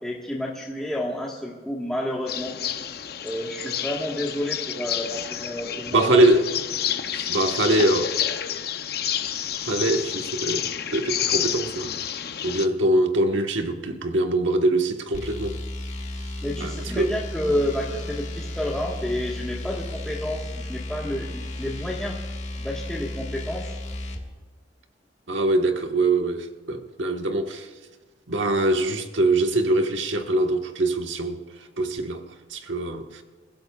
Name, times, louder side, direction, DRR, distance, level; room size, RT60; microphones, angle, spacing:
voice 1, 0.0-2.5 3.2-6.2 16.4-22.2 22.6-23.7, left 1 dB, 5° left, 1.4 m, -30 dB
sound 1, 2.3-12.7, left 9 dB, 55° left, 0.7 m, -29 dB
voice 2, 5.9-6.5 7.1-8.2 9.6-11.9 12.4-15.6 16.6-17.1 25.3-27.7 28.3-31.4 31.8-32.2 32.5-33.2, right 2 dB, 85° right, 1.4 m, -23 dB
sound 2, 15.1-24.2, left 1 dB, 40° left, 1.8 m, -34 dB
29.0 x 16.0 x 2.4 m
head